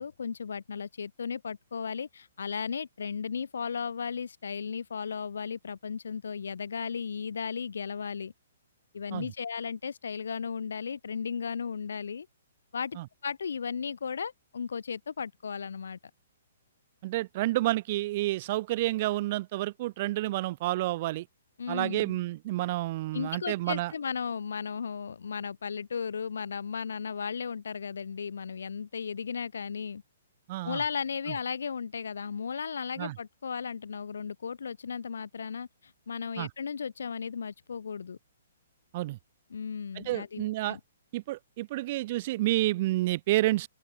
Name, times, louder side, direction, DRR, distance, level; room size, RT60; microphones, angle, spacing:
voice 1, 0.0-8.3 8.9-12.3 12.7-16.0 21.6-22.2 23.1-30.0 30.6-38.2 39.5-40.8, left 6 dB, 85° left, 4.8 m, -35 dB
voice 2, 17.0-21.3 21.7-23.9 30.5-30.8 33.0-33.2 36.4-36.5 38.9-39.2 40.0-40.8 41.1-43.7, right 17 dB, 30° right, 2.3 m, -29 dB
open air
hypercardioid pair, 175°, 0 cm